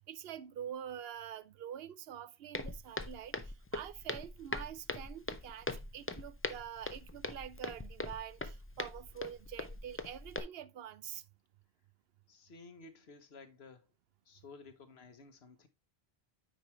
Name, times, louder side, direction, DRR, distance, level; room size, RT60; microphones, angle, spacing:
voice 1, 0.1-11.2, right 9 dB, 70° right, 0.8 m, -46 dB
Walk footsteps, 2.5-10.4, left 2 dB, 20° left, 0.4 m, -41 dB
voice 2, 12.3-13.9 14.2-15.7, left 4 dB, 80° left, 1.3 m, -54 dB
9.2 x 4.8 x 3.1 m
omnidirectional pair, 1.1 m